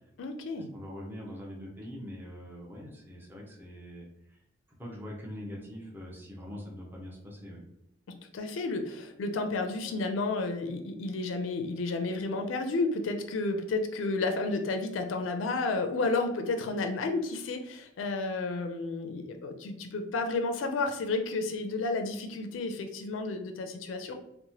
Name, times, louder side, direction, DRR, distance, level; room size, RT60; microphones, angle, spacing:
voice 1, 0.2-0.7 8.1-24.1, left 3 dB, 85° left, 6 dB, 0.4 m, -31 dB
voice 2, 0.7-4.0 4.8-7.6, equal, 10° right, -3 dB, 0.6 m, -43 dB
2.9 x 2.1 x 2.7 m, 0.81 s
head